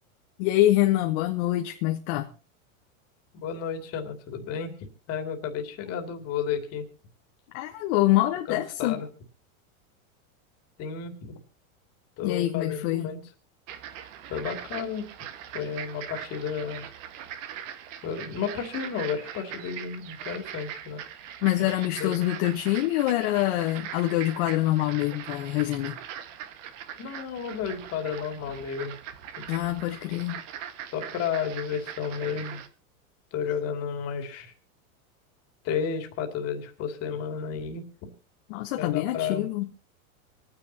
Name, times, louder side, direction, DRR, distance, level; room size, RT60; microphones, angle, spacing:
voice 1, 0.4-2.3 7.5-9.0 12.2-13.1 21.4-26.0 29.5-30.4 38.5-39.7, left 15 dB, 50° left, 1.3 m, -25 dB
voice 2, 3.3-4.7 5.1-6.9 8.5-9.1 10.8-11.4 12.2-13.2 14.3-15.1 15.5-16.8 18.0-21.0 21.6-22.1 27.0-29.0 30.9-32.6 33.3-34.5 35.6-38.1 38.8-39.5, left 7 dB, 35° left, 2.7 m, -32 dB
sound 1, 13.7-32.7, right 10 dB, 60° right, 1.7 m, -41 dB
26.5 x 9.8 x 2.9 m
supercardioid pair, 145°, 43 cm